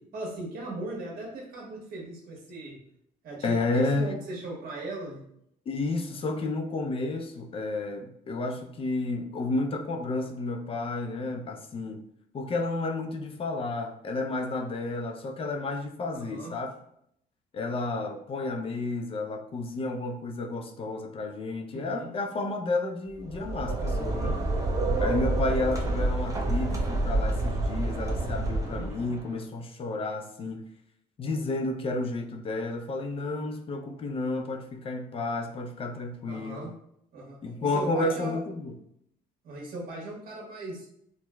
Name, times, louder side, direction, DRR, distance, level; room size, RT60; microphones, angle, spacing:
voice 1, 0.1-2.8 3.2-5.2 16.1-16.5 21.7-22.1 23.9-24.4 28.5-28.9 36.3-36.7 37.1-37.4 37.7-38.4 39.4-40.8, right 2 dB, 60° right, -2 dB, 1.3 m, -38 dB
voice 2, 3.4-4.1 5.7-12.0 12.3-16.7 17.5-24.4 25.0-30.6 31.2-36.7 37.4-38.7, left 2 dB, 35° left, 4 dB, 0.4 m, -31 dB
sound 1, 23.2-29.2, right 2 dB, 20° right, 0.5 m, -28 dB
4.4 x 2.1 x 2.2 m, 0.73 s
cardioid pair, 110°, 17 cm